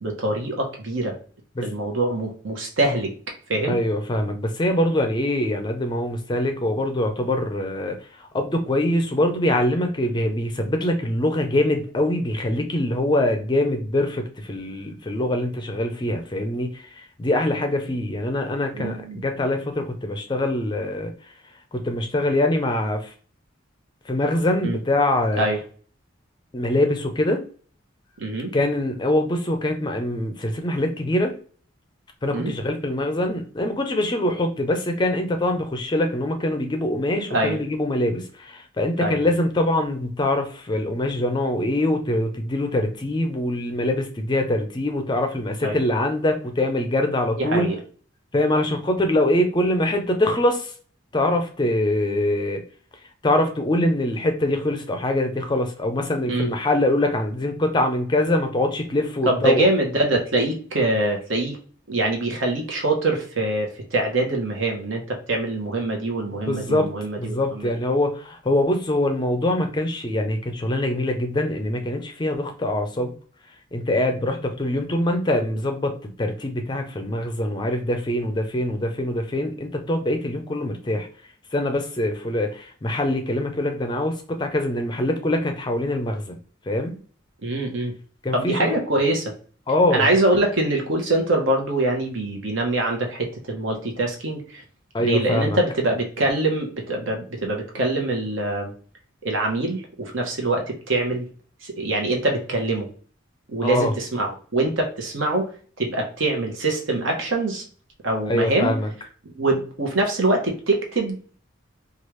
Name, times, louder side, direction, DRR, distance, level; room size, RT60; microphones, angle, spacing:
voice 1, 0.0-1.1 1.6-3.1 3.5-3.8 18.7-19.2 24.6-24.8 25.4-25.6 28.2-28.5 32.3-32.5 37.3-37.6 39.0-39.3 45.6-45.8 47.4-47.8 56.3-56.5 59.2-61.6 61.9-67.7 87.4-87.9 88.3-89.2 89.9-94.6 95.0-98.7 99.2-101.3 101.6-102.9 103.5-105.5 105.8-107.6 108.0-108.8 109.2-111.2, right 2 dB, 75° right, 1 dB, 0.9 m, -24 dB
voice 2, 3.7-21.3 21.7-23.1 24.1-25.4 26.5-27.4 28.5-31.3 32.2-47.7 48.3-50.7 51.1-52.6 53.2-59.7 66.5-66.9 67.2-73.1 73.7-81.1 81.5-86.4 86.6-87.0 88.2-88.7 89.7-90.1 94.9-95.6 103.6-103.9 108.3-108.9, left 1 dB, 20° left, 5 dB, 0.4 m, -23 dB
3.1 x 2.4 x 3.1 m, 0.43 s
head